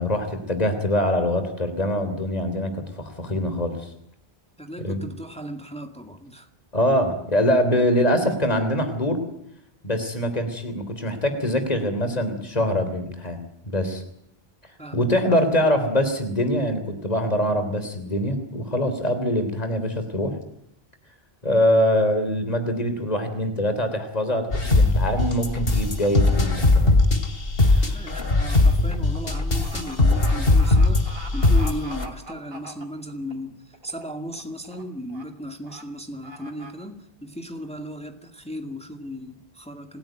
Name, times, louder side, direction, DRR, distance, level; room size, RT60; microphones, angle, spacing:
voice 1, 0.0-3.9 4.8-5.0 6.7-9.2 9.8-13.4 13.7-14.0 14.9-20.3 21.4-27.0 27.7-28.0, left 1 dB, 40° left, 8 dB, 3.4 m, -23 dB
voice 2, 4.6-6.5 14.8-15.3 27.9-40.0, equal, 5° left, 5 dB, 2.1 m, -36 dB
sound 1, 24.5-32.1, left 2 dB, 65° left, 2.8 m, -20 dB
sound 2, 27.2-27.5 27.8-33.3 33.7-34.1 34.3-34.8 35.1-35.2 35.6-35.8 36.2-36.7, right 2 dB, 70° right, 4.0 m, -42 dB
28.0 x 16.0 x 9.2 m, 0.73 s
omnidirectional pair, 1.0 m